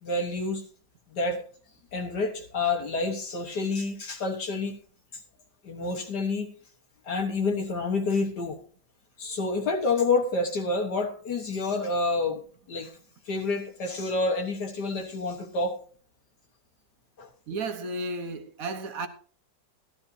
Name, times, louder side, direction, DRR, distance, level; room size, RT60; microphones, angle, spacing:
voice 1, 0.0-0.6 1.1-1.4 1.9-4.7 5.6-6.5 7.1-8.6 9.2-12.4 12.7-12.9 13.3-15.8 17.2-17.3, left 3 dB, 65° left, 1.8 m, -28 dB
voice 2, 17.5-19.1, right 2 dB, 55° right, 1.4 m, -33 dB
15.5 x 12.0 x 2.7 m
omnidirectional pair, 2.0 m